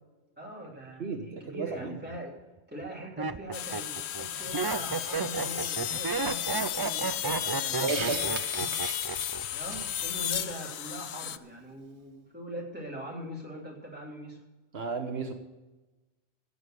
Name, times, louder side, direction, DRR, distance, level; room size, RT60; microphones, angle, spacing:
voice 1, 0.4-2.4 2.7-8.4 9.5-14.4, equal, 10° right, -3 dB, 3.3 m, -42 dB
voice 2, 1.0-2.0 7.8-8.3 8.6-8.7 14.7-15.3, right 4 dB, 70° right, 4 dB, 1.4 m, -33 dB
Laughter, 1.8-2.2 2.8-9.4 9.7-10.2, right 5 dB, 35° right, 0.4 m, -33 dB
sound 1, 3.5-11.4, left 10 dB, 75° left, 0.9 m, -33 dB
Hiss, 7.9-9.9, right 5 dB, 85° right, 1.4 m, -38 dB
14.5 x 8.4 x 6.6 m, 1.1 s
omnidirectional pair, 1.1 m